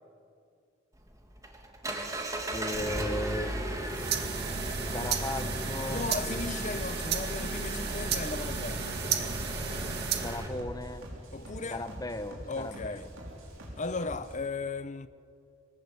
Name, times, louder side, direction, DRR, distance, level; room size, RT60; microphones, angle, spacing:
Engine, 1.0-10.5, right 1 dB, 15° right, 2.3 m, -36 dB
voice 1, 2.5-3.7 4.1-4.2 4.9-6.8 10.2-11.1 11.7-13.1, left 1 dB, 20° left, 1.3 m, -37 dB
sound 1, 2.5-14.3, equal, 80° right, 5.5 m, -46 dB
sound 2, 3.7-10.5, right 7 dB, 55° right, 2.0 m, -34 dB
voice 2, 5.9-8.9 11.3-11.8 12.5-13.1 13.8-15.1, left 3 dB, 35° left, 0.8 m, -36 dB
25.0 x 19.5 x 8.4 m
head